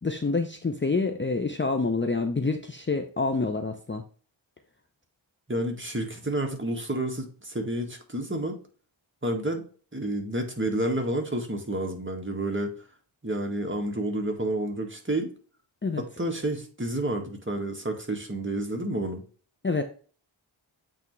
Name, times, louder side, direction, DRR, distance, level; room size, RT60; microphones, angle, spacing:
voice 1, 0.0-4.0 15.8-16.0 19.6-19.8, left 3 dB, 25° left, 5 dB, 0.7 m, -27 dB
voice 2, 5.5-8.6 9.2-9.6 9.9-12.7 13.2-15.3 16.0-19.2, right 1 dB, 25° right, 3 dB, 1.7 m, -30 dB
8.4 x 3.5 x 3.2 m, 0.40 s
cardioid pair, 45°, 49 cm